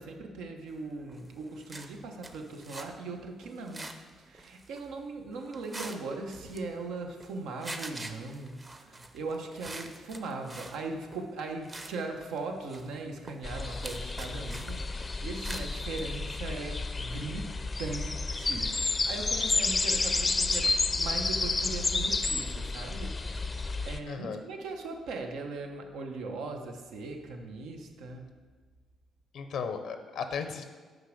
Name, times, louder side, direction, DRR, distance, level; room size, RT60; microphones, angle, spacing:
voice 1, 0.0-3.9 4.2-28.3, right 3 dB, 85° right, 3 dB, 1.0 m, -39 dB
sound 1, 1.0-1.3 1.6-2.9 3.4-4.1 4.3-4.8 5.3-6.0 6.3-7.3 7.6-10.8 11.1-11.3 11.6-12.0 12.2-14.7 15.0-16.2, right 2 dB, 25° right, 0.7 m, -45 dB
sound 2, 13.4-24.0, left 3 dB, 25° left, 0.5 m, -31 dB
voice 2, 24.1-24.4 29.3-30.6, left 6 dB, 75° left, 8 dB, 0.6 m, -35 dB
6.5 x 5.1 x 6.5 m, 1.4 s
cardioid pair, 90°, 0 cm